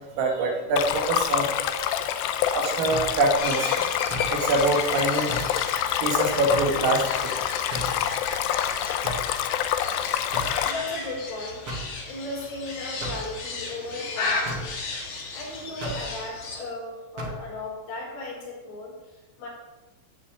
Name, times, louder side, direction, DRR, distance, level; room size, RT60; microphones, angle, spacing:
voice 1, 0.2-7.5, right 2 dB, 80° right, 1 dB, 5.0 m, -26 dB
Stream, 0.8-10.7, left 10 dB, 85° left, 2.4 m, -27 dB
sound 1, 2.9-3.2 4.1-4.4 5.3-5.6 6.5-6.8 7.7-8.0 9.0-9.3 10.3-10.6 11.7-11.9 13.0-13.3 14.5-14.7 15.8-16.1 17.2-17.4, right 1 dB, 45° right, 1.9 m, -34 dB
sound 2, 3.4-16.6, left 3 dB, 45° left, 2.6 m, -35 dB
voice 2, 10.6-11.7 12.0-14.8 15.0-19.5, left 2 dB, 70° left, -4 dB, 7.6 m, -36 dB
16.0 x 6.7 x 8.8 m, 1.1 s
omnidirectional pair, 5.8 m